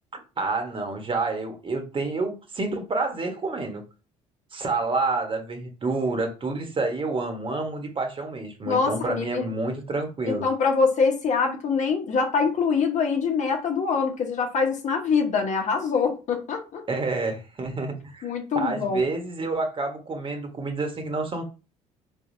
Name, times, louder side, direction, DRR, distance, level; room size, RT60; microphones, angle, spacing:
voice 1, 0.1-3.8 4.5-10.5 16.9-21.4, right 3 dB, 35° right, 1.3 m, -29 dB
voice 2, 8.7-9.4 10.2-16.8 18.2-19.0, left 5 dB, 50° left, 1.1 m, -24 dB
4.0 x 3.5 x 2.7 m
supercardioid pair, 70°, 16 cm